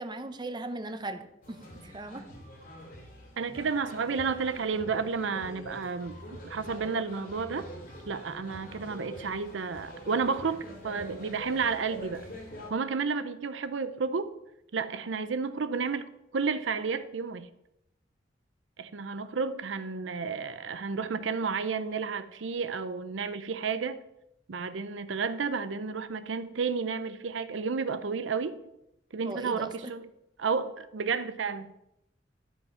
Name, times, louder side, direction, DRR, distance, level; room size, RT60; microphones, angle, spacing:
voice 1, 0.0-1.6 1.8-2.2 29.2-29.9, right 2 dB, 25° right, 8 dB, 0.7 m, -38 dB
sound 1, 1.4-12.7, equal, 50° left, 2.5 m, -45 dB
voice 2, 3.4-7.7 8.1-12.3 12.7-14.3 14.7-17.5 18.8-24.0 24.5-28.6 29.1-30.1 30.4-31.7, right 5 dB, 80° right, 12 dB, 0.6 m, -31 dB
11.5 x 5.4 x 5.7 m, 0.83 s
head